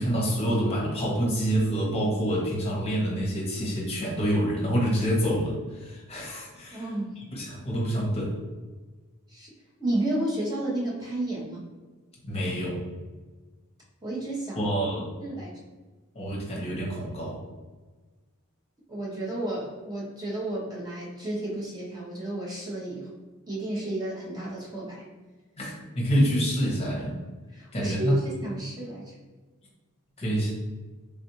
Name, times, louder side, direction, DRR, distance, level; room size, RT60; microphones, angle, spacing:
voice 1, 0.0-6.8 7.2-8.3 12.2-12.8 14.6-15.1 16.1-17.4 25.6-27.2 27.7-28.2 30.2-30.5, equal, 25° left, -3 dB, 0.9 m, -27 dB
voice 2, 6.7-7.2 9.3-9.5 9.8-11.7 14.0-14.8 15.2-15.6 18.9-23.1 23.5-25.1 27.5-29.1, right 1 dB, 15° right, -5 dB, 0.9 m, -32 dB
3.5 x 2.5 x 2.8 m, 1.3 s
head